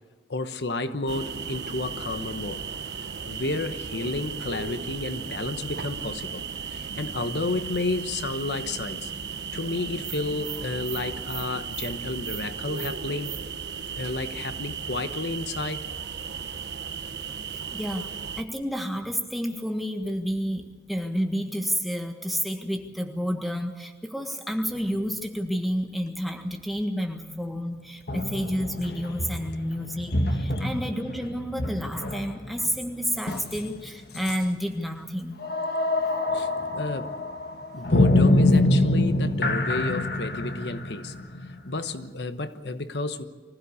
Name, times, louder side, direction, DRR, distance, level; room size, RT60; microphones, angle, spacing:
voice 1, 0.3-2.6 3.3-9.1 9.5-13.3 13.9-15.9 36.3-37.1 37.7-41.1 41.5-43.2, left 2 dB, 75° left, 10 dB, 1.1 m, -31 dB
sound 1, 1.1-18.4, right 6 dB, 75° right, 1.2 m, -35 dB
voice 2, 17.7-18.1 18.4-35.4, equal, ahead, 3 dB, 1.6 m, -30 dB
sound 2, 24.8-24.9 28.1-33.9 34.1-34.4 35.4-42.0, left 2 dB, 60° left, 1.5 m, -25 dB
25.0 x 15.5 x 8.4 m, 1.5 s
head